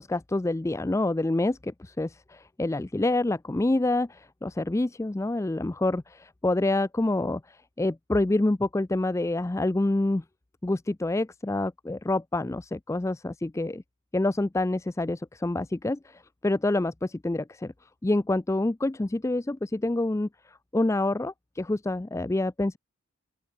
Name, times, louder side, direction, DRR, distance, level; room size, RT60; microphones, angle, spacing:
voice 1, 0.0-10.2 10.6-13.8 14.1-17.7 18.0-22.8, left 2 dB, 15° left, 0.3 m, -27 dB
open air
head